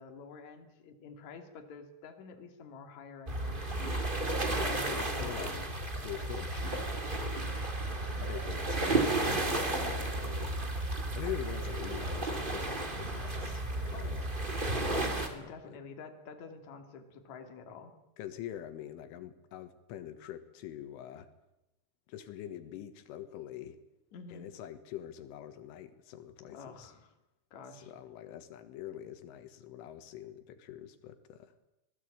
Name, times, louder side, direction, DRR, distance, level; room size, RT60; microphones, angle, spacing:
voice 1, 0.0-4.0 4.6-5.7 13.9-14.3 14.9-17.9 24.1-24.5 26.4-27.1 27.5-27.9, left 4 dB, 45° left, 5 dB, 3.3 m, -48 dB
sound 1, 3.3-15.3, right 2 dB, 20° right, 1.3 m, -33 dB
voice 2, 4.5-5.5 6.0-7.5 8.2-10.5 11.1-14.2 15.4-15.7 18.2-21.3 22.1-23.8 24.3-26.9 27.7-31.5, left 11 dB, 85° left, 10 dB, 4.0 m, -44 dB
25.5 x 19.5 x 8.7 m, 0.92 s
omnidirectional pair, 5.6 m